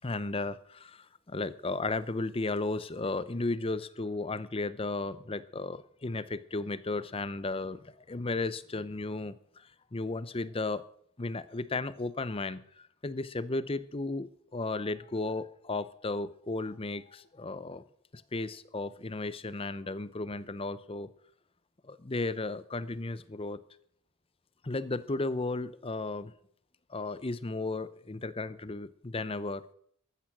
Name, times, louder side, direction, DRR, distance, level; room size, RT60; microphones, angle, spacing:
voice 1, 0.0-10.8 11.2-17.8 18.1-21.1 21.8-23.6 24.6-26.3 26.9-29.7, left 2 dB, 25° left, 16 dB, 0.6 m, -34 dB
14.5 x 12.5 x 6.0 m, 0.64 s
head